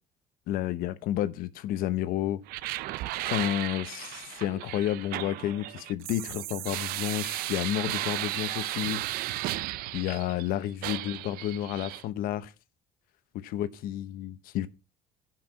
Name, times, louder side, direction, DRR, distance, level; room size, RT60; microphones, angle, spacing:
voice 1, 0.5-2.4 3.3-9.0 9.9-12.5 13.3-14.7, left 12 dB, 65° left, 0.8 m, -31 dB
sound 1, 2.5-10.5 10.8-12.0, right 17 dB, 70° right, 0.5 m, -35 dB
10.5 x 5.9 x 5.8 m
cardioid pair, 140°, 16 cm